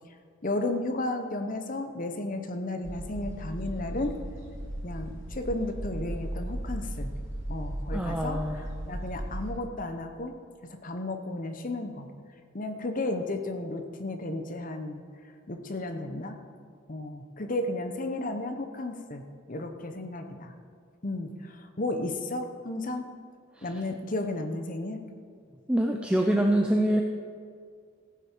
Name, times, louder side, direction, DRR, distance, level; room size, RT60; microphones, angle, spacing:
voice 1, 0.4-4.1 4.8-7.1 7.5-10.3 10.7-12.1 12.5-15.0 15.5-16.4 16.9-20.5 21.0-23.1 23.6-25.1, left 2 dB, 35° left, 6 dB, 0.9 m, -33 dB
sound 1, 2.8-9.5, right 1 dB, 55° right, 2.1 m, -36 dB
voice 2, 7.9-8.6 23.6-23.7 25.7-27.0, right 1 dB, 5° right, 2 dB, 0.5 m, -25 dB
15.0 x 9.4 x 4.5 m, 2.2 s
head